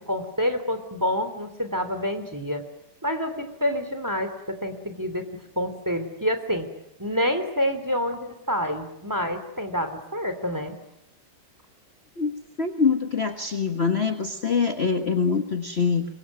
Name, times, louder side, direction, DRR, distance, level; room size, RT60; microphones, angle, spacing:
voice 1, 0.1-2.6 3.0-5.2 5.6-6.7 7.0-10.8, equal, 10° right, 8 dB, 3.1 m, -27 dB
voice 2, 12.6-16.1, left 5 dB, 40° left, 5 dB, 1.6 m, -24 dB
25.0 x 22.5 x 9.5 m, 0.84 s
omnidirectional pair, 2.0 m